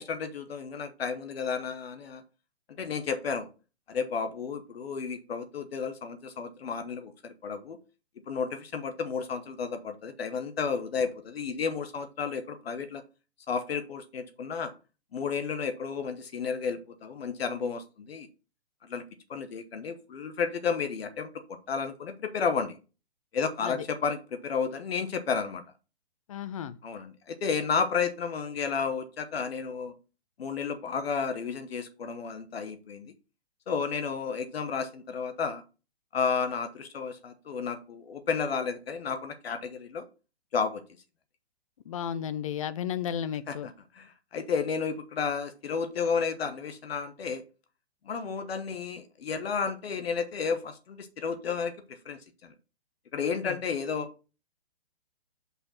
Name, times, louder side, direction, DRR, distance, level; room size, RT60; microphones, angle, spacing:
voice 1, 0.0-2.2 2.7-3.5 3.9-7.8 8.3-13.0 13.5-14.7 15.1-18.3 18.8-19.0 19.3-22.8 23.3-25.6 26.8-29.9 30.4-33.1 33.7-35.6 36.1-40.1 40.5-40.8 43.5-47.4 48.1-52.5 53.1-54.1, left 5 dB, 65° left, 1.1 m, -32 dB
voice 2, 26.3-26.8 41.9-43.7 53.4-53.6, left 9 dB, 35° left, 0.4 m, -33 dB
5.5 x 4.3 x 5.7 m
hypercardioid pair, 140°, 32 cm